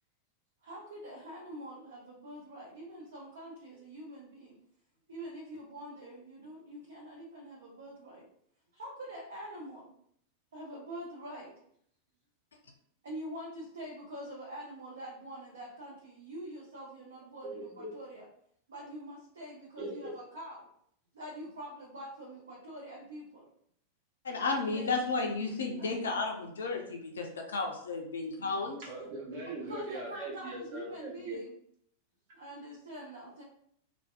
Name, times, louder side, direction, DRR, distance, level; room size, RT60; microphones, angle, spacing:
voice 1, 0.6-4.6 5.1-8.3 8.8-9.9 10.5-11.5 13.0-18.2 18.7-20.7 21.1-23.5 24.6-25.0 25.8-25.9 29.6-31.5 32.3-33.4, right 1 dB, 65° right, -3 dB, 0.5 m, -45 dB
voice 2, 17.4-17.9 19.8-20.1 28.8-31.4, right 2 dB, 50° right, -3 dB, 0.9 m, -40 dB
voice 3, 24.2-28.8, left 3 dB, 65° left, 2 dB, 0.4 m, -33 dB
2.6 x 2.1 x 2.3 m, 0.67 s
figure-of-eight pair, 90°, 0 cm